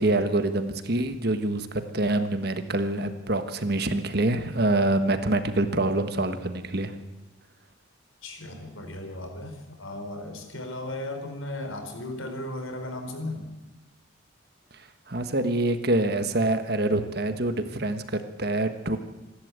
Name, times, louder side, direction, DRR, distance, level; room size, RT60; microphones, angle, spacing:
voice 1, 0.0-6.9 15.1-19.0, right 2 dB, 50° right, 9 dB, 1.5 m, -26 dB
voice 2, 8.2-13.5, left 1 dB, 90° left, 5 dB, 4.2 m, -36 dB
27.0 x 12.0 x 8.3 m, 1.1 s
head